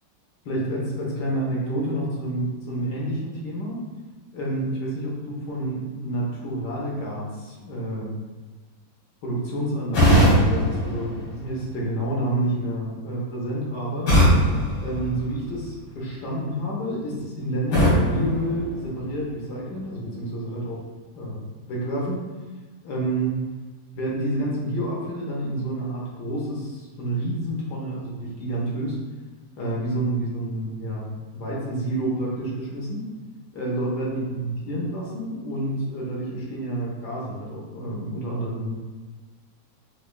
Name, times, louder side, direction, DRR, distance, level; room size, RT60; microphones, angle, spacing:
voice 1, 0.4-3.8 4.3-8.1 9.2-14.1 14.8-20.8 21.1-21.4 21.7-22.2 22.8-23.4 23.9-29.0 29.6-33.1 33.5-38.7, right 1 dB, 65° left, -4 dB, 1.3 m, -29 dB
sound 1, 9.9-11.9 14.1-15.8 17.7-19.3, equal, 85° left, 2.1 m, -21 dB
4.9 x 2.2 x 2.3 m, 1.3 s
omnidirectional pair, 2.1 m